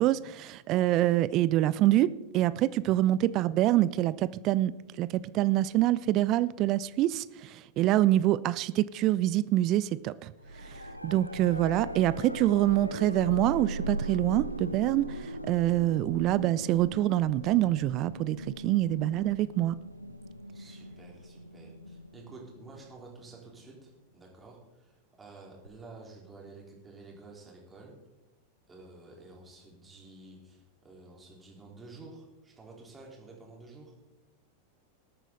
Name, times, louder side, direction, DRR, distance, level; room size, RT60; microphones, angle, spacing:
voice 1, 0.0-2.1 2.3-4.7 5.0-10.3 11.0-19.8, right 14 dB, 40° right, 18 dB, 0.4 m, -26 dB
sound 1, 10.4-23.3 25.7-25.8, equal, 90° left, 0.5 m, -39 dB
voice 2, 20.5-27.9 28.7-33.9, right 3 dB, 15° right, -2 dB, 3.9 m, -51 dB
20.0 x 9.0 x 3.9 m, 1.0 s
figure-of-eight pair, 90°, 0 cm